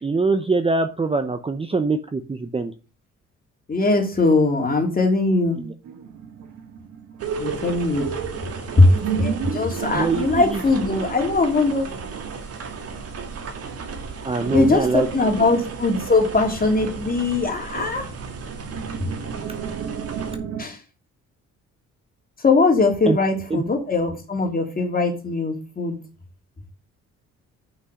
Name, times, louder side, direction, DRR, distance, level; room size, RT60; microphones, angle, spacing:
voice 1, 0.0-2.7 5.5-5.7 9.9-10.6 14.2-15.1 15.4-15.5 23.1-23.2 23.5-23.6, right 3 dB, 20° right, 8 dB, 0.7 m, -23 dB
voice 2, 3.7-5.6 7.4-8.1 8.8-11.9 14.5-18.0 20.6-20.8 22.4-26.0, left 3 dB, 30° left, 3 dB, 2.6 m, -20 dB
sound 1, 5.8-13.3 13.6-13.7 13.9-14.0 14.4-20.6, right 7 dB, 75° right, 1.5 m, -33 dB
sound 2, 7.2-20.4, right 5 dB, 55° right, 1.8 m, -35 dB
6.1 x 5.6 x 6.3 m, 0.33 s
cardioid pair, 90°, 30 cm